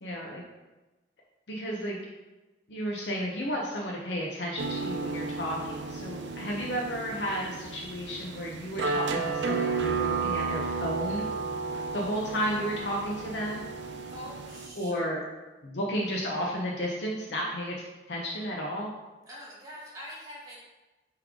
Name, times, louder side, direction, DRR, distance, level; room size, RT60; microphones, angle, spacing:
voice 1, 0.0-0.4 1.5-2.0 2.7-11.3 11.9-13.6 14.8-15.2 15.6-17.7 18.1-18.9, equal, 75° left, -2 dB, 0.9 m, -32 dB
sound 1, 4.6-14.7, right 4 dB, 75° right, 0.5 m, -33 dB
voice 2, 14.1-15.1 19.3-20.6, equal, 20° right, -5 dB, 2.0 m, -44 dB
8.5 x 3.3 x 3.7 m, 1.1 s
head